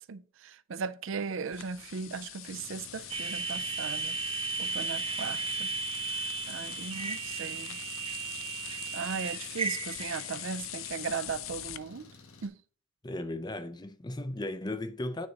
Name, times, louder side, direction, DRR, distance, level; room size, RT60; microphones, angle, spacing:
voice 1, 0.0-4.2 4.6-5.7 6.0-7.8 8.6-12.1 12.4-12.6, right 5 dB, 65° right, 0.5 m, -38 dB
sound 1, 1.5-11.8, left 14 dB, 70° left, 0.5 m, -43 dB
Engine, 2.5-12.5, left 3 dB, 90° left, 1.5 m, -54 dB
sound 2, 3.1-10.7, right 5 dB, 25° right, 0.7 m, -35 dB
voice 2, 13.0-15.3, left 1 dB, 20° left, 0.5 m, -36 dB
9.6 x 4.1 x 5.2 m
head